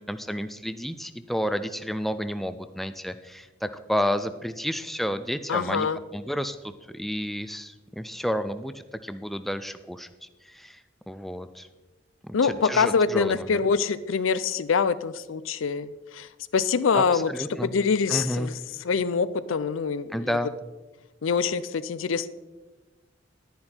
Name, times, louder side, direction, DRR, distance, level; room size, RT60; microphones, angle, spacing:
voice 1, 0.0-5.9 6.1-10.8 11.1-11.7 12.2-13.6 16.9-17.7 18.1-18.5 20.1-20.5, equal, ahead, 11 dB, 0.4 m, -31 dB
voice 2, 5.5-6.0 12.3-17.3 17.6-20.4 21.2-22.3, left 5 dB, 85° left, 16 dB, 0.5 m, -25 dB
10.5 x 10.5 x 4.4 m, 1.2 s
head